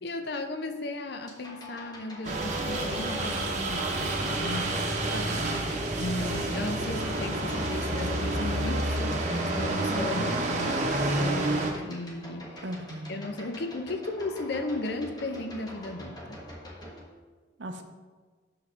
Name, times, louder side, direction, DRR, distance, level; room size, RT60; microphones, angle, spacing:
voice 1, 0.0-5.1 5.6-12.6 13.1-16.5, left 2 dB, 55° left, 6 dB, 0.6 m, -36 dB
sound 1, 1.2-17.0, left 1 dB, 20° left, 1.2 m, -47 dB
sound 2, 2.2-11.7, right 2 dB, 35° right, 0.9 m, -29 dB
voice 2, 5.1-5.7 12.6-13.2 17.6-17.8, right 1 dB, 65° right, 6 dB, 0.7 m, -37 dB
7.9 x 6.4 x 3.7 m, 1.4 s
head